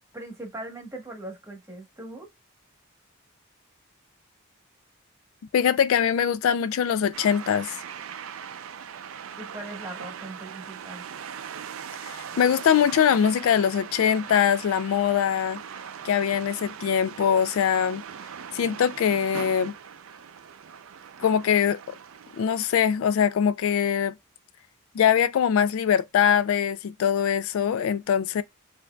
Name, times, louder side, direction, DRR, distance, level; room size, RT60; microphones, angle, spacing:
voice 1, 0.1-2.3 9.4-11.0, right 1 dB, 15° right, 1.1 m, -40 dB
voice 2, 5.5-7.8 12.0-15.6 16.0-18.0 18.5-19.7 21.2-21.8 22.4-24.1 24.9-28.4, left 8 dB, 70° left, 0.3 m, -22 dB
sound 1, 7.1-22.8, right 7 dB, 70° right, 0.4 m, -40 dB
4.5 x 2.6 x 2.2 m
head